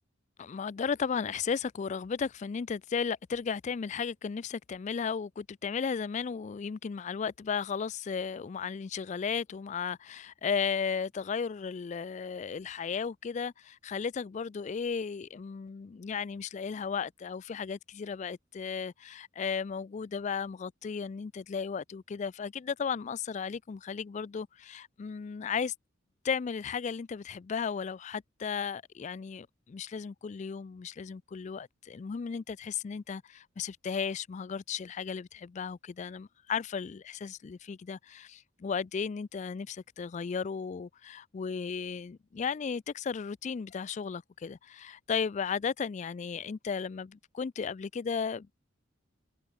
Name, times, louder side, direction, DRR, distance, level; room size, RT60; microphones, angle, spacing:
voice 1, 0.4-25.7 26.2-48.5, left 6 dB, 35° left, 0.3 m, -35 dB
head